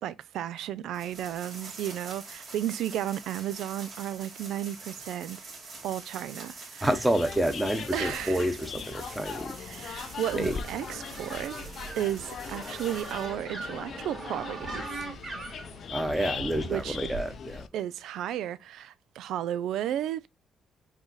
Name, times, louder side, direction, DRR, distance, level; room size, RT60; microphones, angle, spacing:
voice 1, 0.0-5.4 5.8-6.9 7.9-8.5 9.6-11.6 12.0-14.9 16.6-17.0 17.7-20.3, right 11 dB, 80° right, 0.3 m, -33 dB
sound 1, 0.9-13.3, right 3 dB, 60° right, 1.9 m, -45 dB
voice 2, 6.8-9.5 10.3-10.6 15.9-17.6, right 1 dB, 10° right, 0.9 m, -28 dB
sound 2, 6.9-17.7, left 7 dB, 60° left, 0.5 m, -41 dB
sound 3, 10.0-17.3, right 3 dB, 35° right, 2.2 m, -41 dB
4.9 x 2.6 x 3.9 m
cardioid pair, 90°, 0 cm